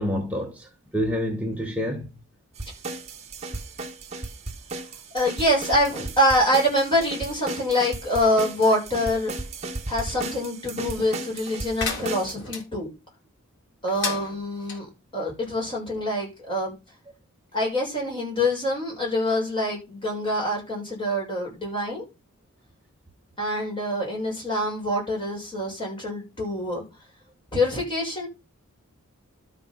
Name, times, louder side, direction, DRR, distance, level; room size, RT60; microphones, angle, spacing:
voice 1, 0.0-2.1, equal, 5° right, 1.1 m, -28 dB
sound 1, 2.6-12.3, right 3 dB, 30° right, 1.6 m, -35 dB
voice 2, 5.1-9.3 9.9-12.9 13.8-16.7 17.5-22.0 23.4-26.8 27.5-28.3, left 1 dB, 20° left, 6.7 m, -25 dB
sound 2, 11.8-12.6 13.9-14.8, left 4 dB, 55° left, 3.6 m, -33 dB
12.5 x 6.3 x 6.1 m
head